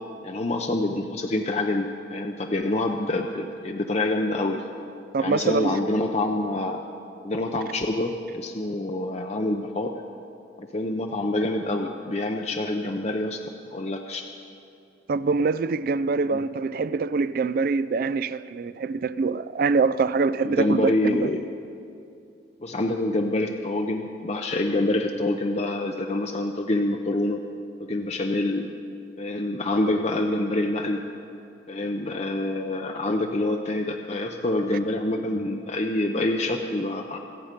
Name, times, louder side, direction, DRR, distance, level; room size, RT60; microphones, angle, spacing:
voice 1, 0.2-4.6 5.2-6.8 7.2-9.9 10.6-13.4 13.7-14.3 16.3-16.4 20.4-21.4 22.6-27.4 27.8-28.7 29.2-31.0 31.7-37.2, left 2 dB, 35° left, 0.6 m, -26 dB
voice 2, 5.1-5.8 15.1-21.3, right 4 dB, 50° right, 0.3 m, -24 dB
26.0 x 8.7 x 5.2 m
head